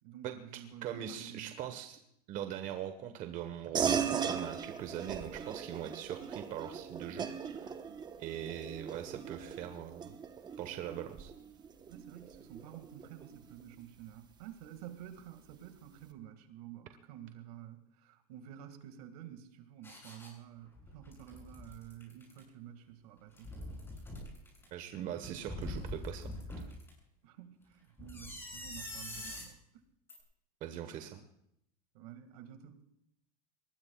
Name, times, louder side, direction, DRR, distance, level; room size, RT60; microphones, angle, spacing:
voice 1, 0.0-1.6 7.6-8.0 11.9-23.6 27.2-29.6 31.9-32.8, right 11 dB, 70° right, 8 dB, 2.1 m, -50 dB
voice 2, 0.8-2.0 2.3-7.3 7.5-7.7 8.2-10.2 10.6-11.3 24.7-26.3 30.6-31.2, right 10 dB, 40° right, 7 dB, 1.3 m, -41 dB
sound 1, 3.7-13.6, right 7 dB, 20° right, 1.0 m, -38 dB
sound 2, 19.8-20.3 20.7-22.4 23.2-24.7 25.2-26.9 28.0-29.5 30.1-30.2, left 1 dB, 10° left, 7.6 m, -44 dB
23.5 x 20.5 x 2.4 m, 0.73 s
supercardioid pair, 145°, 20 cm